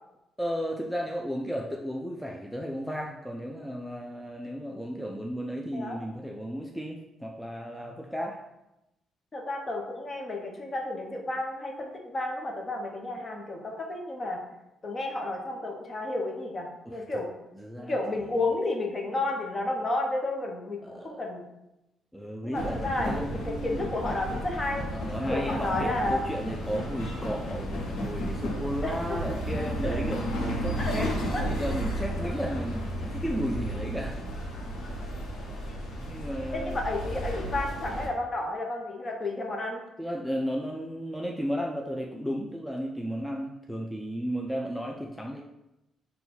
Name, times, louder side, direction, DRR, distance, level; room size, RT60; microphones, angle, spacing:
voice 1, 0.4-8.4 16.9-17.0 17.6-18.0 20.8-21.2 22.1-23.9 24.9-34.2 36.1-36.8 40.0-45.4, equal, ahead, 0 dB, 0.4 m, -34 dB
voice 2, 9.3-14.4 14.8-17.3 17.9-21.5 22.4-24.9 25.3-26.2 28.8-29.4 29.8-30.0 30.8-30.9 31.3-31.4 36.5-39.8, left 2 dB, 35° left, 1 dB, 0.8 m, -32 dB
sound 1, 22.5-38.1, equal, 85° left, 0.8 m, -33 dB
3.9 x 2.2 x 4.1 m, 0.92 s
cardioid pair, 90°, 0 cm